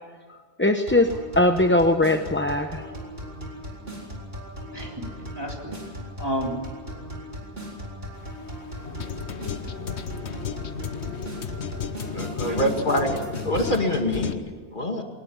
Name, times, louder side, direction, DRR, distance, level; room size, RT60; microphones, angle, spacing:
voice 1, 0.6-1.1 1.4-2.9, left 1 dB, 10° left, 5 dB, 0.7 m, -20 dB
sound 1, 0.9-13.8, equal, 60° right, 4.4 m, -38 dB
voice 2, 4.7-5.8 6.2-6.6 11.2-11.4 12.4-13.2 15.0-15.1, equal, 20° right, -1 dB, 3.6 m, -32 dB
sound 2, 8.1-14.3, left 7 dB, 80° left, 1.3 m, -34 dB
voice 3, 12.1-13.1 13.5-15.0, left 1 dB, 50° left, 3 dB, 2.4 m, -25 dB
22.0 x 19.5 x 7.2 m, 1.5 s
omnidirectional pair, 1.1 m